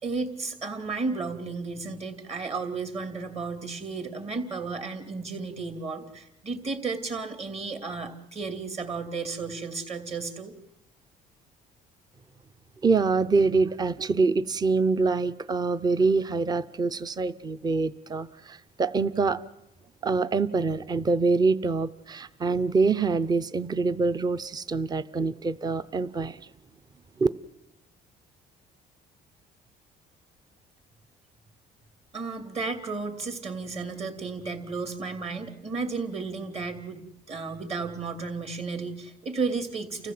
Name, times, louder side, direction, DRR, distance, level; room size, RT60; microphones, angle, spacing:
voice 1, 0.0-10.5 32.1-40.1, right 4 dB, 40° right, 6 dB, 3.0 m, -33 dB
voice 2, 12.8-19.4 20.0-26.4 27.2-27.3, right 4 dB, 25° right, 14 dB, 0.7 m, -25 dB
29.5 x 14.5 x 7.7 m, 0.89 s
cardioid pair, 110°, 17 cm